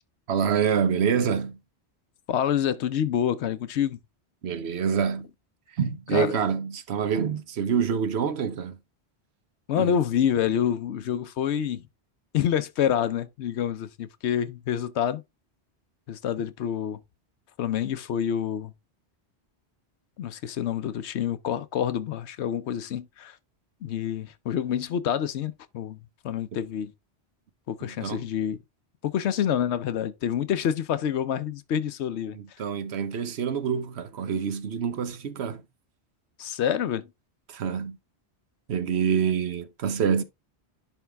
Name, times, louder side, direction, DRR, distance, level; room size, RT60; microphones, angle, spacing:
voice 1, 0.3-1.6 4.4-5.3 5.8-8.8 9.8-9.9 27.8-28.3 32.3-35.6 37.5-38.0 38.7-40.2, right 7 dB, 75° right, 1.1 m, -26 dB
voice 2, 2.3-4.0 6.1-6.3 9.7-11.9 12.3-15.2 16.1-17.0 17.6-18.7 20.2-23.4 23.8-26.0 26.2-26.9 27.7-28.6 29.0-32.4 36.4-37.1, left 9 dB, 80° left, 1.0 m, -27 dB
10.5 x 3.5 x 3.4 m
omnidirectional pair, 1.1 m